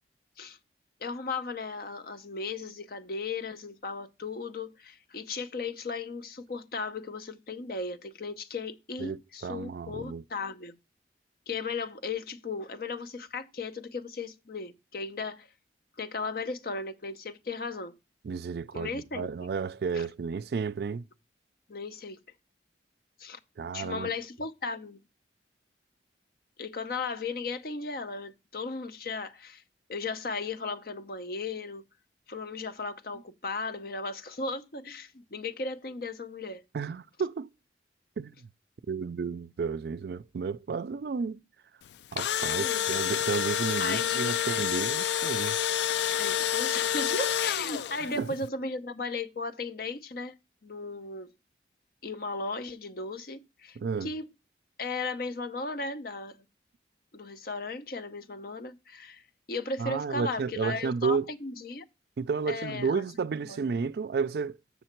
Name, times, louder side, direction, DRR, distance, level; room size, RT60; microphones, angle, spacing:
voice 1, 1.0-10.8 11.5-15.5 16.0-18.0 18.7-19.3 19.9-20.0 21.7-22.2 23.2-23.4 23.7-25.0 26.6-29.6 29.9-31.8 32.3-36.6 42.4-43.0 43.8-44.6 46.2-50.4 50.6-51.3 52.0-54.2 54.8-56.4 57.1-59.2 59.5-61.8 62.5-63.0 63.5-63.6, left 3 dB, 55° left, 0.8 m, -36 dB
voice 2, 9.0-10.2 18.2-21.1 23.6-24.1 36.7-37.5 38.2-38.5 38.9-41.4 42.1-45.6 48.1-48.3 53.8-54.1 59.8-61.3 62.2-64.6, right 5 dB, 60° right, 0.3 m, -32 dB
Engine / Drill, 41.9-48.2, left 10 dB, 75° left, 0.3 m, -28 dB
7.0 x 6.9 x 4.4 m
head